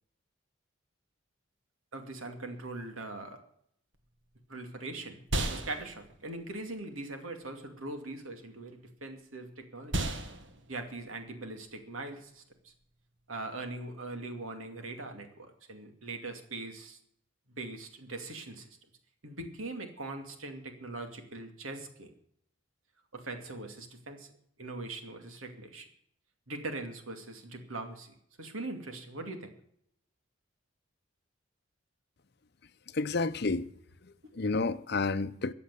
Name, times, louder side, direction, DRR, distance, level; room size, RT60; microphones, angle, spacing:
voice 1, 1.9-3.4 4.5-5.2 5.5-10.2 10.7-12.7 13.3-17.0 17.6-18.7 19.2-22.1 23.1-24.3 24.6-25.9 26.5-29.5, right 2 dB, 85° right, 2.5 m, -41 dB
sound 1, 3.9-13.6, right 2 dB, 65° right, 1.7 m, -39 dB
voice 2, 32.9-33.7 34.0-35.5, left 3 dB, 50° left, 0.7 m, -30 dB
14.5 x 8.6 x 6.8 m
head